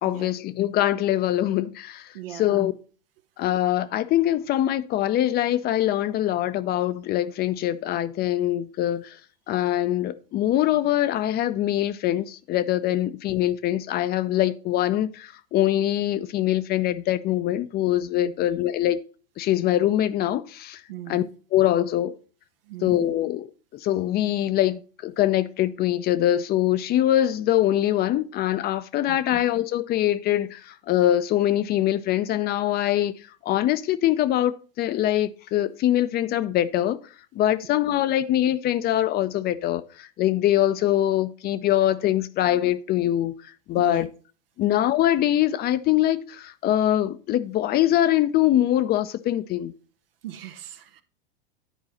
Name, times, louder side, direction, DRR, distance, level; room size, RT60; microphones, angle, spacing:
voice 1, 0.0-2.7 3.4-9.2 9.5-19.0 19.4-20.8 21.1-21.2 21.5-22.1 22.8-33.1 33.4-37.0 37.3-43.3 43.7-44.1 44.6-49.7, left 13 dB, 35° left, 0.5 m, -23 dB
voice 2, 2.1-2.7 18.2-18.3 20.9-21.3 22.6-23.1 29.1-29.4 43.8-44.1 50.2-51.0, right 13 dB, 75° right, 0.9 m, -39 dB
10.0 x 4.7 x 4.1 m
hypercardioid pair, 95°, 29 cm